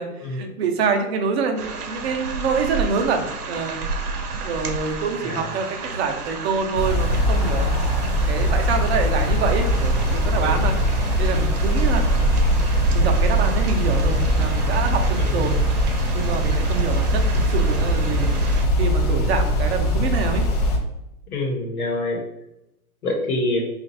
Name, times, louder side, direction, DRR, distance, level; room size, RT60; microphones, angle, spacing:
voice 1, 0.0-3.8 4.4-7.8 8.3-10.8 11.2-12.1 12.9-15.6 16.1-18.4 18.8-20.4, right 5 dB, 45° right, 4 dB, 0.7 m, -26 dB
sound 1, 1.6-18.7, right 3 dB, 85° right, 0.8 m, -30 dB
sound 2, 6.7-20.8, equal, 30° left, 0.5 m, -21 dB
voice 2, 21.3-22.2 23.0-23.6, left 2 dB, 70° left, 0 dB, 1.1 m, -25 dB
2.9 x 2.5 x 4.1 m, 0.87 s
hypercardioid pair, 135°, 44 cm